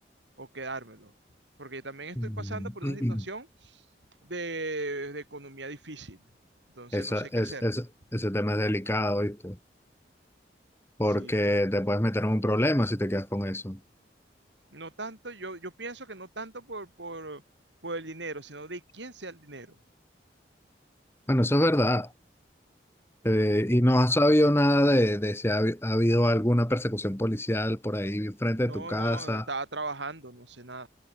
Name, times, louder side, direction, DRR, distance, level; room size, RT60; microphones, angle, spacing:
voice 1, 0.4-1.1 1.6-3.8 4.2-6.2 6.7-7.6 11.1-11.6 14.7-17.4 17.8-19.8 28.6-30.9, right 2 dB, 85° right, 5.9 m, -39 dB
voice 2, 2.2-3.2 6.9-7.9 8.1-9.6 11.0-13.8 21.3-22.1 23.2-29.5, equal, 15° left, 1.9 m, -25 dB
head